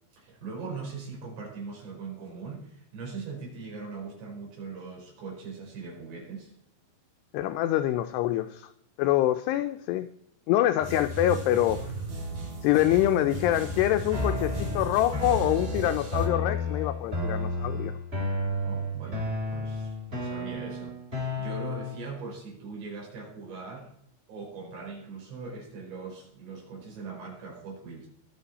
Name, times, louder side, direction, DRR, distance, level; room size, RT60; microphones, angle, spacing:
voice 1, 0.2-6.5 18.6-23.9 24.3-28.1, right 4 dB, 70° right, -2 dB, 7.1 m, -40 dB
voice 2, 7.3-8.7 9.0-10.1 10.5-11.8 12.6-17.9, left 13 dB, 80° left, 8 dB, 2.6 m, -25 dB
sound 1, 10.8-16.3, right 2 dB, 50° right, 4.7 m, -36 dB
sound 2, 14.1-22.1, left 2 dB, 15° right, 3.1 m, -32 dB
22.5 x 7.5 x 4.2 m, 0.73 s
omnidirectional pair, 5.1 m